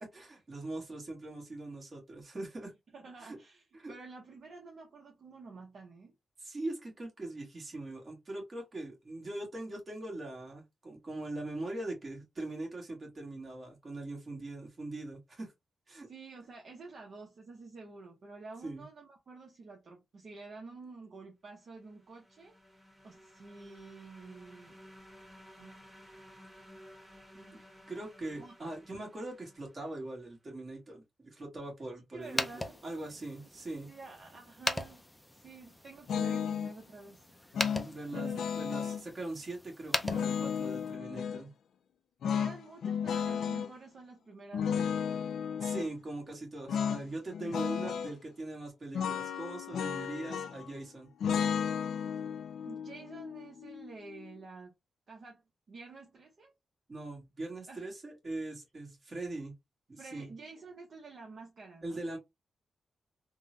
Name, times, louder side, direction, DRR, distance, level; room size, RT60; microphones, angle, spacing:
voice 1, 0.0-2.7 3.2-3.4 3.7-3.9 6.4-15.5 15.9-16.1 18.6-18.8 27.3-27.6 27.9-33.9 37.8-41.5 45.6-51.1 56.9-59.5 59.9-60.3 61.8-62.2, right 2 dB, 35° right, 1.5 m, -41 dB
voice 2, 2.9-6.1 16.1-22.6 23.0-24.8 25.6-26.5 28.4-28.5 32.1-32.8 33.9-37.3 38.0-38.5 42.3-44.9 47.4-47.6 52.7-54.7 55.1-55.4 55.7-56.5 57.7-57.9 60.0-62.0, right 3 dB, 55° right, 0.8 m, -50 dB
sound 1, 21.7-30.3, equal, 10° right, 1.3 m, -56 dB
sound 2, 32.2-40.9, left 1 dB, 5° left, 0.4 m, -40 dB
sound 3, 36.1-36.7 37.5-39.0 40.0-41.4 42.2-43.7 44.5-45.9 46.7-47.0 47.3-48.1 48.9-50.7 51.2-54.3, left 7 dB, 90° left, 0.4 m, -33 dB
3.6 x 2.1 x 2.6 m
wide cardioid pair, 115°, 0 cm